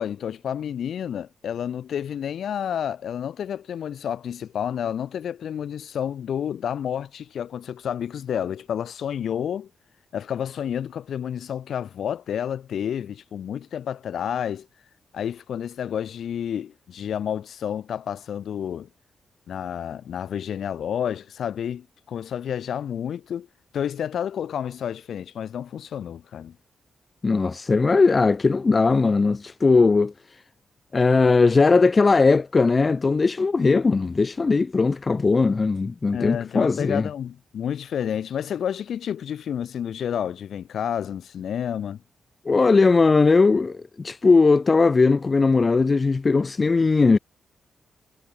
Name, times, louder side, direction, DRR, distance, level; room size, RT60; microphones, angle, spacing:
voice 1, 0.0-9.7 10.1-14.7 15.1-18.9 19.5-23.5 23.7-26.6 36.1-42.0, left 9 dB, 75° left, 2.2 m, -30 dB
voice 2, 27.2-30.1 30.9-37.1 42.4-47.2, left 4 dB, 35° left, 1.1 m, -19 dB
cardioid pair, 100°, 0 cm